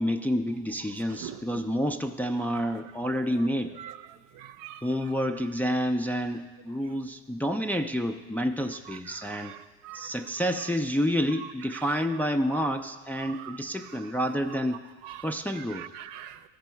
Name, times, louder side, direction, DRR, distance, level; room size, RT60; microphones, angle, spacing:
voice 1, 0.0-3.7 4.8-9.5 9.9-14.8 15.2-15.8, equal, 5° left, 0.3 m, -29 dB
voice 2, 1.2-1.6 3.8-3.9 4.3-4.9 9.1-10.2 11.7-11.9 13.3-13.5 15.0-15.3 15.6-16.5, right 12 dB, 65° right, 0.6 m, -43 dB
13.5 x 5.3 x 4.5 m
supercardioid pair, 90°, 34 cm